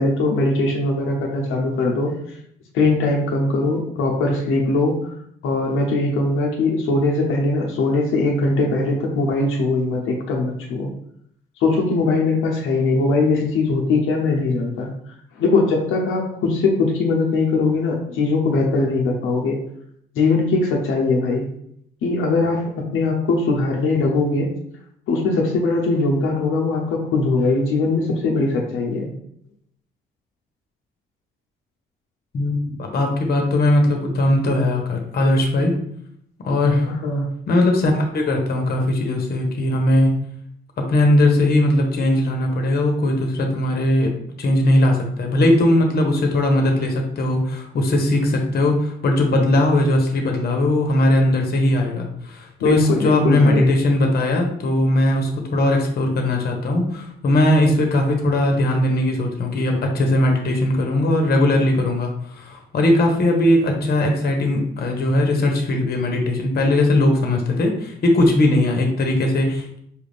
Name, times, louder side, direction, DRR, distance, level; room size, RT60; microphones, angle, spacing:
voice 1, 0.0-2.4 2.7-5.1 5.4-10.9 11.6-14.9 15.4-19.6 20.1-21.4 22.0-24.5 25.1-29.1 36.8-37.3 52.6-53.7, left 3 dB, 85° left, 0 dB, 0.7 m, -20 dB
voice 2, 32.3-35.8 36.4-36.9 37.5-40.1 40.9-44.1 44.4-69.8, left 1 dB, 50° left, 2 dB, 0.9 m, -19 dB
4.8 x 2.5 x 3.4 m, 0.70 s
cardioid pair, 90°, 20 cm